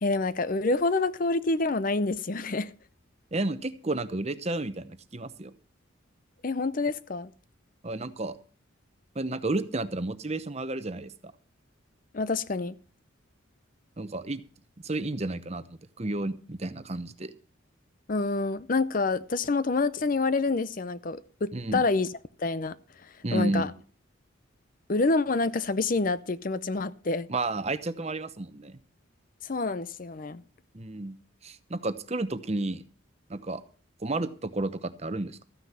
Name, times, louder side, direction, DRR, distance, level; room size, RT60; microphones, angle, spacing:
voice 1, 0.0-2.7 6.4-7.3 12.1-12.7 18.1-22.1 22.4-22.7 23.3-23.7 24.9-27.3 29.4-30.4, left 3 dB, 40° left, 0.6 m, -27 dB
voice 2, 3.3-5.5 7.8-8.4 9.1-11.1 14.0-14.4 14.8-17.3 21.5-21.8 23.2-23.7 27.3-28.8 30.7-31.1 31.4-32.8 33.3-33.6 34.0-35.4, right 2 dB, 30° right, 0.8 m, -31 dB
14.0 x 9.7 x 5.6 m
head